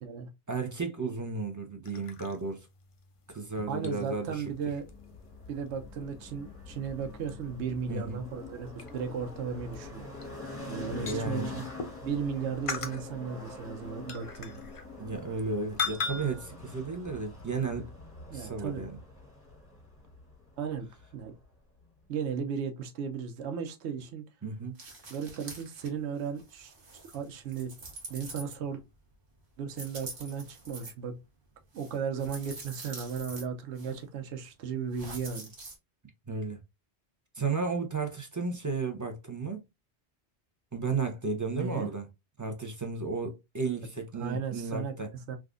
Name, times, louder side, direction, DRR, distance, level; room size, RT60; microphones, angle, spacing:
voice 1, 0.5-2.7 3.3-4.4 7.9-8.2 10.9-11.5 15.0-17.9 18.3-19.0 24.4-24.8 36.3-36.6 37.4-39.6 40.7-42.1 42.4-45.1, right 4 dB, 25° right, 0.4 m, -33 dB
sound 1, 1.9-12.2 12.7-15.5 15.8-16.5, left 5 dB, 50° left, 0.4 m, -41 dB
voice 2, 3.7-4.8 5.5-10.1 10.7-11.6 12.0-14.6 18.3-18.9 20.6-21.3 22.1-24.2 25.1-26.7 27.1-27.7 28.1-28.8 29.6-31.2 31.7-35.5 41.5-41.9 44.2-45.4, right 6 dB, 85° right, 0.9 m, -35 dB
sound 2, 4.2-21.5, left 2 dB, 15° left, 1.0 m, -45 dB
sound 3, 24.7-25.9 26.2-28.9 29.7-30.9 31.7-33.4 33.8-34.0 34.9-35.8, right 3 dB, 55° right, 1.1 m, -45 dB
3.5 x 2.4 x 2.4 m
omnidirectional pair, 1.1 m